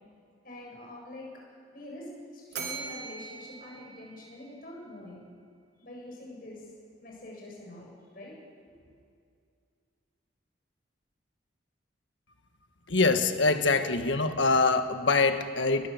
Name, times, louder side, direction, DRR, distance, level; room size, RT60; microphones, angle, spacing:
voice 1, 0.4-1.3 1.7-5.2 5.8-6.7 7.0-8.3 8.6-8.9, left 1 dB, 45° left, -2 dB, 7.4 m, -45 dB
Bell, 2.5-4.8, right 5 dB, 60° right, 3.6 m, -41 dB
voice 2, 12.9-15.9, left 3 dB, 75° left, 8 dB, 1.5 m, -24 dB
22.0 x 21.0 x 7.2 m, 2.3 s
head